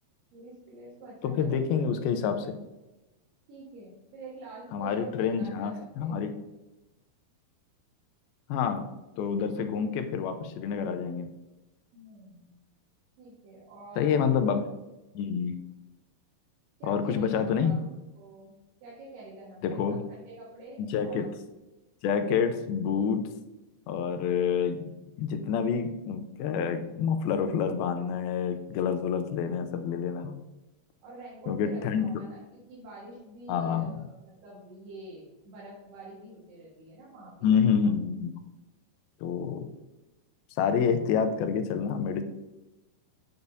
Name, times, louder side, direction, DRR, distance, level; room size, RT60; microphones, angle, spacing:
voice 1, 0.3-1.9 3.5-6.2 11.9-12.5 13.2-14.5 16.8-17.8 18.2-18.5 18.8-21.3 31.0-37.8, right 2 dB, 85° right, -6 dB, 3.7 m, -47 dB
voice 2, 1.2-2.5 4.7-6.4 8.5-8.8 9.2-11.3 14.0-14.7 15.2-15.6 16.8-17.7 19.6-20.0 20.9-21.3 22.0-23.2 23.9-24.9 25.2-30.3 31.5-32.1 33.5-34.0 37.4-38.4 39.2-39.7 40.6-42.2, left 7 dB, 80° left, 8 dB, 2.4 m, -27 dB
7.9 x 7.2 x 2.7 m, 1.0 s
omnidirectional pair, 4.5 m